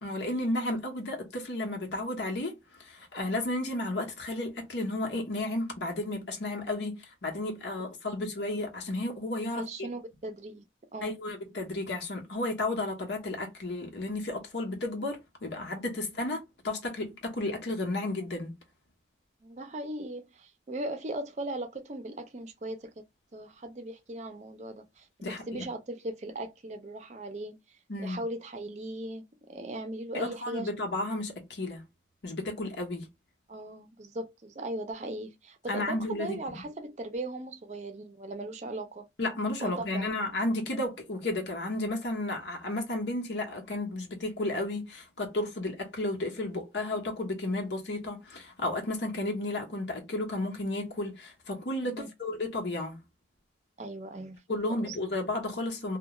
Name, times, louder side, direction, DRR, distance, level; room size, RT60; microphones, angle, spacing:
voice 1, 0.0-2.5 2.8-9.7 11.0-18.5 25.2-25.7 27.9-28.2 30.1-31.8 32.2-33.1 35.7-36.4 39.2-53.0 54.5-56.0, left 2 dB, 85° left, 0.9 m, -33 dB
voice 2, 9.6-10.6 10.9-11.2 19.4-23.0 23.3-27.6 28.0-30.7 33.5-39.1 39.6-40.1 52.0-52.1 53.8-55.0, right 1 dB, 40° right, 0.4 m, -38 dB
2.3 x 2.2 x 2.9 m
head